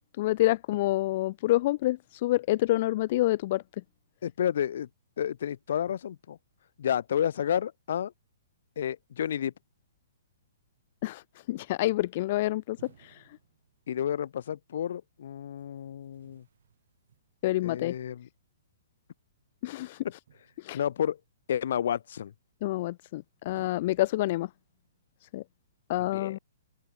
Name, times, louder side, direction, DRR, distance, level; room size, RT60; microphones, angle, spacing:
voice 1, 0.2-3.6 11.0-11.2 11.5-13.2 17.4-17.9 19.6-20.0 20.6-20.8 22.6-24.5 25.3-25.4 25.9-26.4, left 17 dB, 30° left, 0.4 m, -27 dB
voice 2, 4.2-4.9 5.2-6.4 6.8-8.1 8.8-9.5 13.9-16.4 17.6-18.3 20.7-21.2 21.5-22.3 26.1-26.4, left 9 dB, 45° left, 1.0 m, -30 dB
sound 1, 12.8-14.2 15.5-17.6 20.3-21.1 23.4-24.9, right 8 dB, 55° right, 5.3 m, -60 dB
open air
hypercardioid pair, 180°, 0 cm